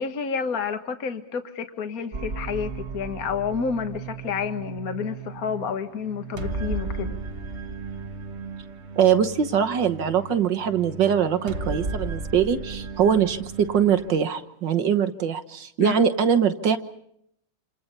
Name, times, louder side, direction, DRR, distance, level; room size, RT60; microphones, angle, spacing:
voice 1, 0.0-7.2 15.8-16.1, left 6 dB, 50° left, 8 dB, 1.9 m, -30 dB
sound 1, 2.1-14.2, right 4 dB, 35° right, 1.5 m, -35 dB
voice 2, 9.0-16.8, right 8 dB, 65° right, 10 dB, 1.9 m, -22 dB
27.5 x 27.5 x 5.5 m, 0.72 s
omnidirectional pair, 2.1 m